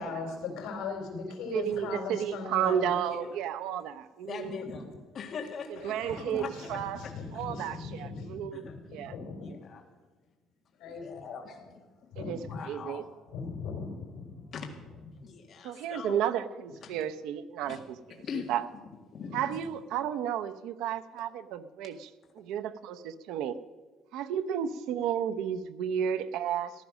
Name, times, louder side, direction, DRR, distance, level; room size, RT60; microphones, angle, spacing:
voice 1, 0.0-2.9 4.6-5.0 5.8-9.5 10.8-11.3 12.1-12.6 13.3-14.5 15.1-15.2, left 4 dB, 80° left, 2 dB, 4.3 m, -39 dB
voice 2, 1.5-4.5 5.8-7.0 7.3-8.6 8.9-9.1 12.2-12.4 12.7-13.0 15.6-17.9 18.5-18.6 19.3-20.6 20.8-22.1 22.4-23.6 24.1-26.7, right 9 dB, 80° right, 11 dB, 0.8 m, -32 dB
voice 3, 4.2-4.8 5.1-6.0 6.3-6.5 7.0-7.1 8.5-8.8 9.4-9.8 10.8-11.8 12.5-13.1 14.5-14.7 15.2-16.2 16.8-17.1 17.6-17.8 18.1-18.5 19.1-19.6, left 6 dB, 40° left, 2 dB, 1.8 m, -41 dB
15.0 x 11.5 x 6.4 m, 1.3 s
cardioid pair, 165°, 0 cm